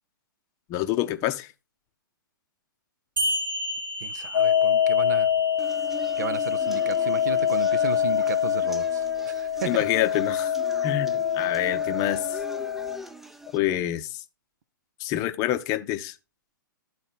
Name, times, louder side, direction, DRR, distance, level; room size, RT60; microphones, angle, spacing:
voice 1, 0.7-1.5 9.6-10.5 10.8-12.4 13.5-14.2 15.0-16.1, left 13 dB, 30° left, 0.7 m, -27 dB
sound 1, 3.2-8.2, equal, 80° right, 1.6 m, -33 dB
voice 2, 4.0-5.3 6.2-9.8, right 9 dB, 55° right, 0.6 m, -34 dB
sound 2, 4.3-13.0, left 9 dB, 60° left, 0.4 m, -25 dB
sound 3, 5.6-13.6, right 1 dB, ahead, 0.5 m, -41 dB
12.0 x 4.1 x 4.2 m
figure-of-eight pair, 115°, 11 cm